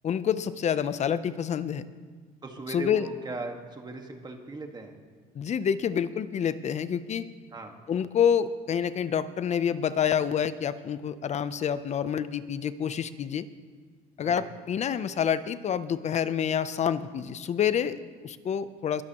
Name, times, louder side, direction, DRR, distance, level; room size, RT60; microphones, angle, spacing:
voice 1, 0.0-1.9 2.7-3.1 5.3-7.3 7.9-13.5 14.2-19.0, left 8 dB, 40° left, 14 dB, 0.6 m, -28 dB
voice 2, 2.4-4.9 7.5-7.7 14.2-14.5, right 3 dB, 25° right, 3 dB, 1.6 m, -38 dB
22.0 x 13.0 x 3.0 m, 1.5 s
cardioid pair, 110°, 17 cm